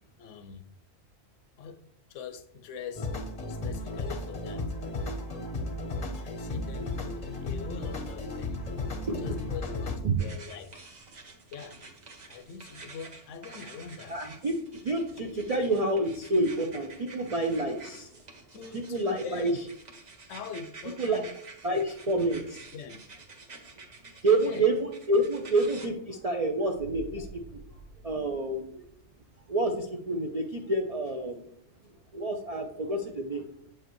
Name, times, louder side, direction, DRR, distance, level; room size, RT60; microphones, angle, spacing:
voice 1, 0.2-0.6 1.6-1.8 2.1-3.1 3.4-5.1 6.2-8.7 9.2-10.7 11.5-11.8 12.3-14.2 18.5-19.6 20.3-21.3 21.7-22.2 22.7-23.0 24.4-24.7, left 6 dB, 75° left, 10 dB, 0.9 m, -43 dB
sound 1, 2.9-10.0, left 2 dB, 35° left, 0.7 m, -34 dB
sound 2, 10.2-25.9, right 3 dB, 35° right, 0.9 m, -49 dB
voice 2, 14.1-14.6 14.8-18.1 18.9-19.5 21.0-21.2 21.6-22.4 24.2-27.3 28.0-28.8 29.5-31.4 32.1-33.4, right 2 dB, 55° right, 3 dB, 0.4 m, -28 dB
sound 3, 26.7-29.4 29.7-29.8, right 2 dB, 75° right, 1.0 m, -49 dB
7.7 x 4.8 x 3.0 m, 0.69 s
omnidirectional pair, 1.3 m